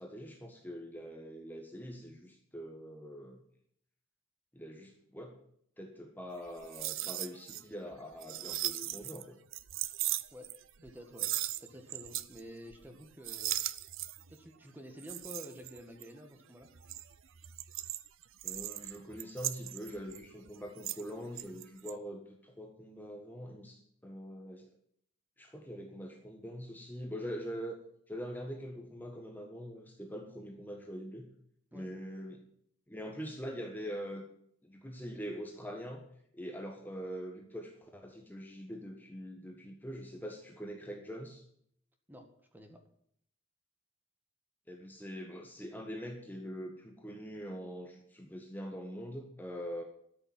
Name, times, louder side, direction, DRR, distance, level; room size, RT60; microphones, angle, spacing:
voice 1, 0.0-3.4 4.5-5.4 5.8-9.4 18.4-24.7 25.4-27.8 28.1-31.3 31.7-32.4 32.9-34.2 34.6-41.4 44.7-49.8, equal, 10° left, 2 dB, 1.4 m, -43 dB
sound 1, 6.5-7.6 7.9-9.2 9.5-10.9 11.2-12.4 12.7-13.0 13.2-14.3 15.0-16.2 16.7-21.1 21.4-21.9, right 15 dB, 75° right, 0.6 m, -38 dB
voice 2, 10.8-11.3 11.6-13.6 14.3-16.7 31.7-31.9 42.1-42.8, equal, 10° right, 5 dB, 1.7 m, -50 dB
13.0 x 6.8 x 9.5 m, 0.68 s
head